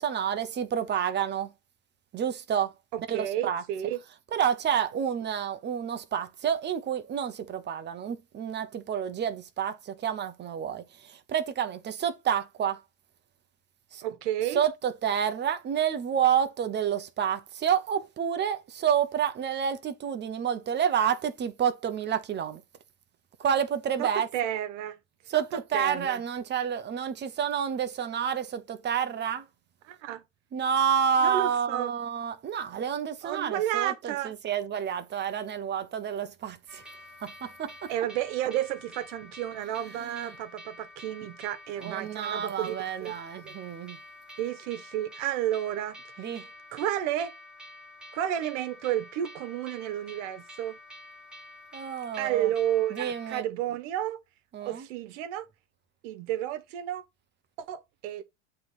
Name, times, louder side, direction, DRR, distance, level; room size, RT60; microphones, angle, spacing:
voice 1, 0.0-1.5 2.1-2.7 3.1-3.6 4.3-12.8 13.9-14.0 14.5-22.6 23.4-24.3 25.3-29.5 30.5-36.8 37.2-37.9 40.0-40.4 41.8-44.0 46.2-46.5 51.7-52.5 52.9-53.5 54.5-54.9, right 8 dB, 25° right, 0.8 m, -29 dB
voice 2, 2.9-4.0 14.0-14.6 24.0-25.0 25.3-25.4 25.7-26.2 29.9-30.2 31.2-31.9 33.2-34.3 37.9-43.2 43.4-43.5 44.4-46.4 46.7-47.3 48.1-50.8 52.2-54.2 54.6-55.5 56.0-57.0 57.7-58.2, right 12 dB, 65° right, 1.2 m, -31 dB
sound 1, 36.7-53.4, left 1 dB, ahead, 1.3 m, -48 dB
7.8 x 3.2 x 5.7 m
supercardioid pair, 120°, 39 cm